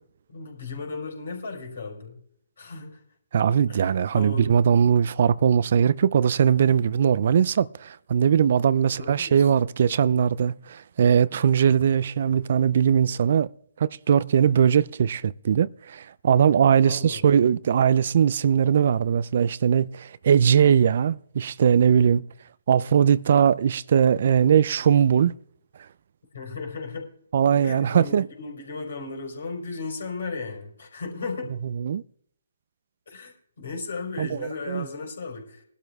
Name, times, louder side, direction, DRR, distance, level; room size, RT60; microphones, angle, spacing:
voice 1, 0.3-2.2 2.6-3.0 3.7-4.7 8.9-9.5 16.8-17.3 26.3-27.1 27.6-31.5 33.1-35.6, left 4 dB, 65° left, 4.6 m, -36 dB
voice 2, 3.3-13.5 13.8-22.3 22.7-25.3 27.3-28.3 31.8-32.0 34.2-34.4 34.7-34.9, right 8 dB, 55° right, 0.4 m, -20 dB
22.0 x 12.0 x 2.4 m
figure-of-eight pair, 140°, 0 cm